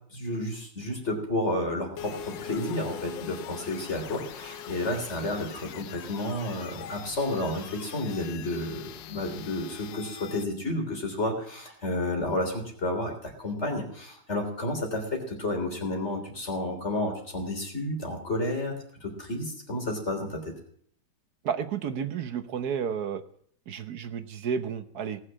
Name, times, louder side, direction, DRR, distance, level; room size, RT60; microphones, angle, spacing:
voice 1, 0.1-18.8 19.0-20.5, left 1 dB, 35° left, 3 dB, 3.5 m, -31 dB
sound 1, 2.0-10.4, left 8 dB, 70° left, 1.4 m, -42 dB
voice 2, 21.4-23.2 23.7-25.2, right 7 dB, 60° right, 10 dB, 1.2 m, -31 dB
19.0 x 6.6 x 7.3 m, 0.62 s
omnidirectional pair, 2.2 m